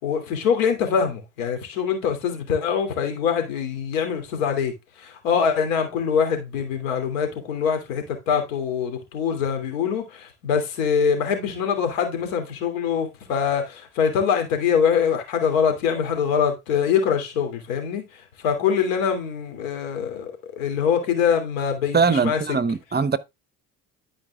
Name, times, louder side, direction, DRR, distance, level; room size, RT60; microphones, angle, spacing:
voice 1, 0.0-4.7 5.0-18.0 18.4-22.4, left 7 dB, 85° left, 2.9 m, -24 dB
voice 2, 21.9-23.2, right 5 dB, 25° right, 0.9 m, -21 dB
12.0 x 5.1 x 3.6 m
supercardioid pair, 75°, 40 cm